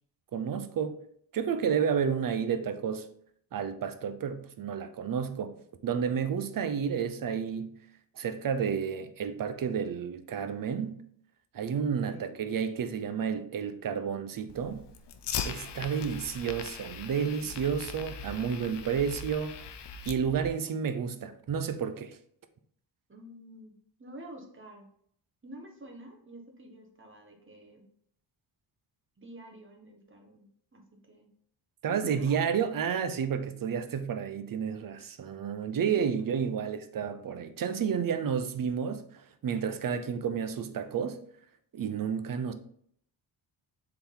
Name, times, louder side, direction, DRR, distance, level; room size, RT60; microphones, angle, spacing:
voice 1, 0.3-1.0 1.3-3.1 3.5-5.5 5.8-7.7 8.2-11.0 11.5-14.9 15.4-19.5 20.1-22.2 31.8-41.2 41.7-42.5, right 7 dB, 45° right, 0.6 m, -31 dB
voice 2, 12.0-12.5 17.3-17.6 23.1-23.7 24.0-24.9 25.4-27.8 29.2-31.3 31.9-32.4 35.9-36.5, right 1 dB, 25° right, 1.4 m, -49 dB
Fire, 14.5-20.5, left 7 dB, 65° left, 0.7 m, -40 dB
7.0 x 3.9 x 3.8 m
wide cardioid pair, 135°, 46 cm